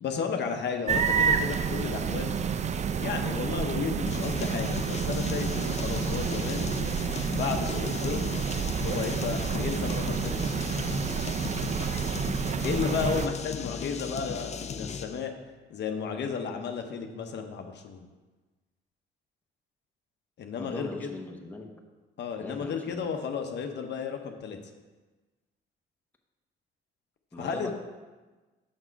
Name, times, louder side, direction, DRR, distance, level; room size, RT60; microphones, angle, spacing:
voice 1, 0.0-2.3 3.0-6.7 7.3-8.4 8.8-10.4 12.6-15.3 15.7-18.0 20.4-21.1 22.2-24.6 27.4-27.7, left 6 dB, 60° left, 4 dB, 0.8 m, -33 dB
sound 1, 0.9-13.3, right 7 dB, 35° right, 0.4 m, -29 dB
sound 2, 4.1-15.2, left 6 dB, 35° left, 0.4 m, -37 dB
voice 2, 20.6-21.7 22.4-23.3 27.3-27.7, left 2 dB, 10° left, 2 dB, 0.9 m, -41 dB
6.3 x 6.0 x 4.6 m, 1.2 s
cardioid pair, 90°, 20 cm